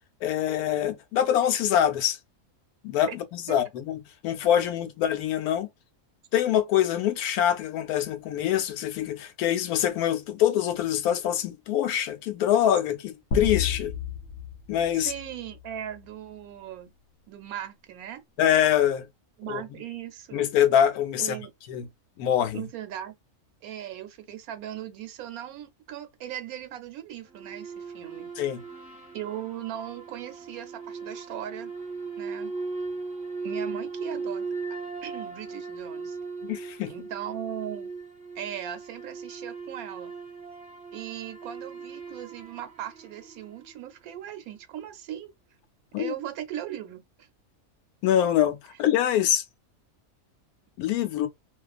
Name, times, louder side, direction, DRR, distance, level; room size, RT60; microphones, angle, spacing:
voice 1, 0.2-2.2 2.8-5.7 6.3-13.9 14.7-15.1 18.4-19.1 19.5-19.6 20.3-21.4 21.7-21.9 22.2-22.6 28.4-28.6 36.4-36.9 45.9-46.2 48.0-49.4 50.8-51.3, left 10 dB, 85° left, 1.1 m, -24 dB
sound 1, 13.3-15.8, left 6 dB, 60° left, 0.7 m, -32 dB
voice 2, 14.9-16.9 17.3-18.2 19.4-20.5 21.2-21.5 22.5-23.1 23.6-28.3 29.1-31.7 32.2-32.5 33.4-34.5 35.0-36.2 36.9-37.9 38.3-40.1 40.9-45.3 46.0-47.3, right 11 dB, 80° right, 1.1 m, -38 dB
sound 2, 27.3-43.9, right 4 dB, 5° right, 0.9 m, -38 dB
2.4 x 2.3 x 2.3 m
omnidirectional pair, 1.5 m